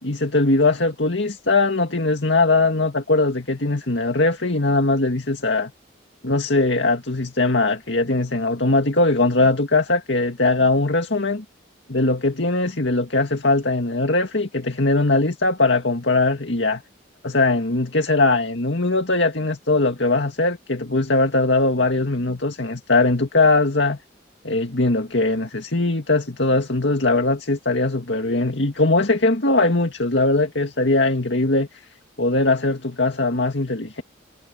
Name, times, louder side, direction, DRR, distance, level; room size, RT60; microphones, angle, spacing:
voice 1, 0.0-5.7 6.2-11.4 11.9-16.8 17.2-24.0 24.4-31.7 32.2-34.0, left 2 dB, 65° left, 2.2 m, -20 dB
head